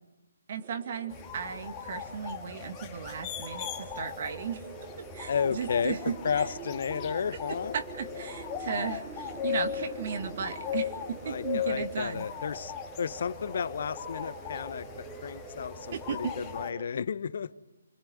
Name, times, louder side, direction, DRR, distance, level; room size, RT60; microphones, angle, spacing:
voice 1, 0.5-6.4 7.5-12.3 15.9-16.3, right 6 dB, 45° right, 2.4 m, -36 dB
sound 1, 0.6-16.9, right 7 dB, 20° right, 2.5 m, -46 dB
sound 2, 1.1-16.7, left 9 dB, 20° left, 2.1 m, -38 dB
voice 2, 5.3-6.0 6.2-7.7 11.2-14.9 15.2-17.5, left 6 dB, 55° left, 1.1 m, -32 dB
27.0 x 23.5 x 9.3 m
figure-of-eight pair, 145°, 0 cm